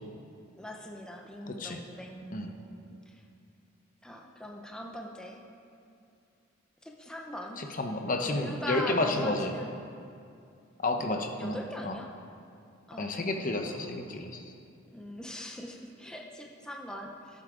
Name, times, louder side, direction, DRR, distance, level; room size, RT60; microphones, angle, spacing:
voice 1, 0.6-2.9 4.0-5.4 6.8-7.6 8.3-9.7 11.4-12.1 12.9-13.9 14.9-17.4, equal, 5° left, 0 dB, 0.7 m, -41 dB
voice 2, 1.5-1.8 2.3-2.5 7.6-9.5 10.8-11.6 11.8-12.0 13.0-14.4, left 2 dB, 40° left, 4 dB, 0.8 m, -31 dB
17.5 x 8.2 x 3.8 m, 2.4 s
head